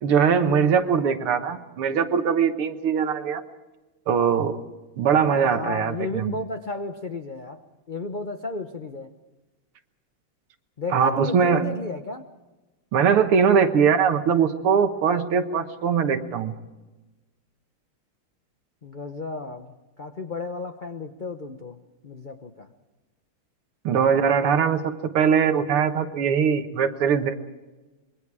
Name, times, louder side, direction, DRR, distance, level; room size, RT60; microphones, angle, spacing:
voice 1, 0.0-3.4 4.1-4.6 5.0-6.4 10.9-11.7 12.9-16.5 23.8-27.4, right 7 dB, 85° right, 8 dB, 2.2 m, -21 dB
voice 2, 5.2-7.6 7.9-9.1 10.8-12.2 18.8-21.8 22.0-22.7, left 3 dB, 70° left, 6 dB, 0.4 m, -33 dB
26.0 x 22.5 x 4.9 m, 1.1 s
omnidirectional pair, 2.4 m